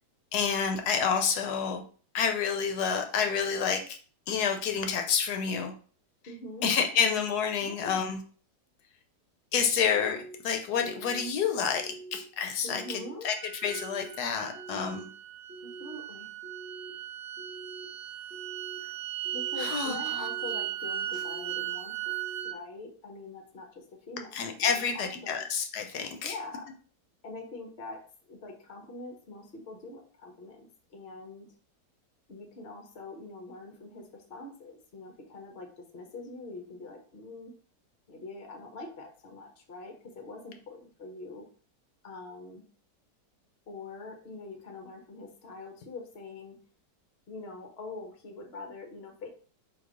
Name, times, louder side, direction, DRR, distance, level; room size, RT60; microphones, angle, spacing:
voice 1, 0.3-1.8 2.1-4.0 4.3-5.7 6.6-8.2 9.5-13.0 13.2-13.3 13.6-15.1 19.6-20.0 24.3-26.3, left 6 dB, 70° left, 5 dB, 1.1 m, -29 dB
voice 2, 6.3-6.7 7.6-8.0 12.6-13.3 15.6-16.3 19.3-22.1 22.4-25.4 26.2-26.7 27.2-31.5 32.3-37.5 38.1-41.5 42.0-42.6 43.7-46.6 47.3-49.3, left 2 dB, 50° left, 4 dB, 0.8 m, -44 dB
sound 1, 9.9-10.3 10.8-11.3 11.7-12.2 12.7-13.2 13.6-14.1 14.5-15.0 15.5-16.0 16.4-16.9 17.4-17.9 18.3-18.8 19.2-19.7 20.2-20.7 21.1-21.6 22.1-22.5, right 2 dB, 15° right, 1.1 m, -46 dB
sound 2, 13.4-22.5, right 12 dB, 80° right, 0.6 m, -37 dB
3.9 x 2.7 x 4.8 m, 0.42 s
omnidirectional pair, 1.9 m